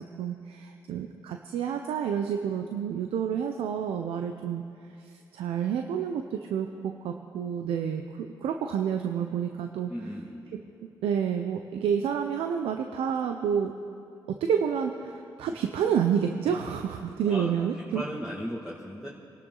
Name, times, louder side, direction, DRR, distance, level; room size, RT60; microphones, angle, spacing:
voice 1, 0.0-4.6 5.1-9.9 10.5-10.6 11.0-13.7 14.3-18.0, right 8 dB, 90° right, 5 dB, 0.7 m, -29 dB
voice 2, 9.9-10.5 17.2-19.1, equal, 5° right, -4 dB, 2.0 m, -37 dB
24.5 x 12.0 x 3.9 m, 2.6 s
cardioid pair, 65°, 9 cm